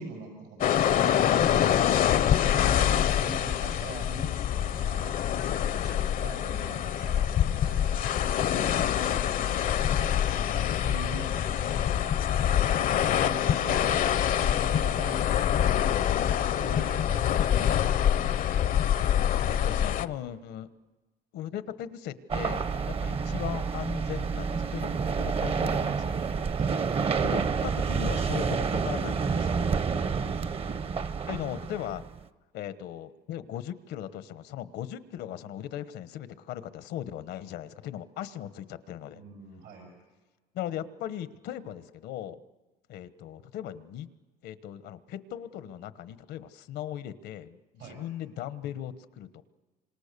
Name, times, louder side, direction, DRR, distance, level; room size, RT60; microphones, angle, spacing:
voice 1, 0.0-1.8 2.1-5.2 5.4-7.9 8.5-15.8 16.3-18.0 26.6-26.8 39.1-39.9 47.8-48.0, right 4 dB, 85° right, 1 dB, 6.7 m, -44 dB
sound 1, 0.6-20.1, left 10 dB, 55° left, 0.7 m, -25 dB
voice 2, 19.4-20.7 21.3-26.3 27.2-29.7 31.3-32.0 32.5-39.2 40.5-42.4 42.9-44.1 44.4-49.4, left 11 dB, 80° left, 13 dB, 1.1 m, -38 dB
sound 2, 22.3-32.2, right 5 dB, 35° right, 0.8 m, -29 dB
27.5 x 26.0 x 6.8 m, 1.2 s
cardioid pair, 110°, 17 cm